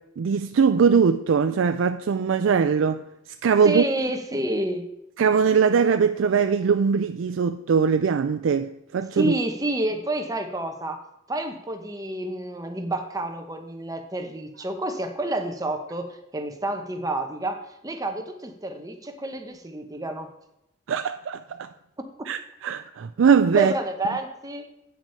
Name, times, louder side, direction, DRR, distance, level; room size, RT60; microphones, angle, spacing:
voice 1, 0.2-3.0 3.4-3.8 5.2-9.3 20.9-21.7 22.3-23.7, right 6 dB, 80° right, 0.4 m, -21 dB
voice 2, 3.6-4.9 9.1-20.3 23.5-24.7, right 1 dB, 20° right, 1.0 m, -29 dB
8.7 x 6.1 x 5.6 m
head